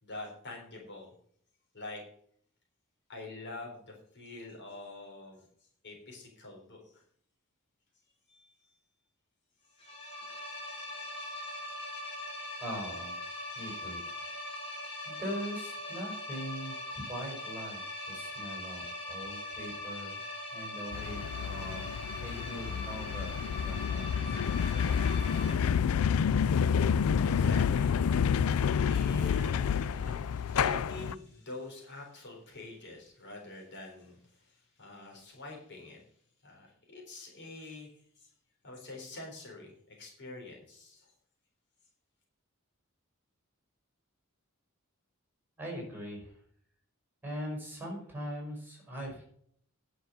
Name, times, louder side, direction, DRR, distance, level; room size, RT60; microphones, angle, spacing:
voice 1, 0.0-1.1 1.7-2.0 3.1-5.5 5.8-7.0 8.3-8.8 26.5-36.0 36.4-38.3 38.6-41.1, left 2 dB, 55° left, -1 dB, 3.8 m, -46 dB
sound 1, 9.8-25.5, left 1 dB, 25° left, 3.1 m, -41 dB
voice 2, 12.6-13.2 13.6-14.0 15.0-20.2 20.5-21.9 22.2-24.4 45.6-46.4 47.2-49.2, equal, 10° right, 0 dB, 5.3 m, -41 dB
sound 2, 20.9-31.1, left 7 dB, 85° left, 0.4 m, -29 dB
10.5 x 6.2 x 6.9 m, 0.62 s
head